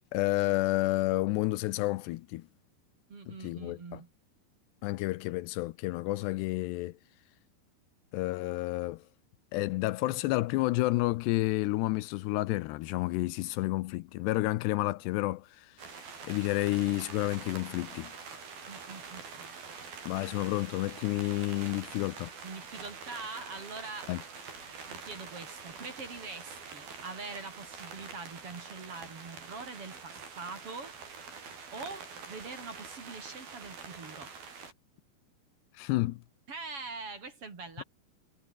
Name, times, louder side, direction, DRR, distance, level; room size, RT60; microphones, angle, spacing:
voice 1, 0.1-2.5 3.3-4.0 4.8-7.0 8.1-9.0 9.5-15.7 16.3-18.1 20.1-22.3 24.1-24.2 35.7-36.2 37.8-37.9, left 19 dB, 85° left, 2.7 m, -30 dB
voice 2, 3.1-4.1 18.7-19.6 22.4-24.1 24.9-30.9 31.7-34.3 36.5-37.8, right 4 dB, 35° right, 3.9 m, -43 dB
sound 1, 15.8-34.7, right 5 dB, 55° right, 7.1 m, -46 dB
omnidirectional pair, 5.0 m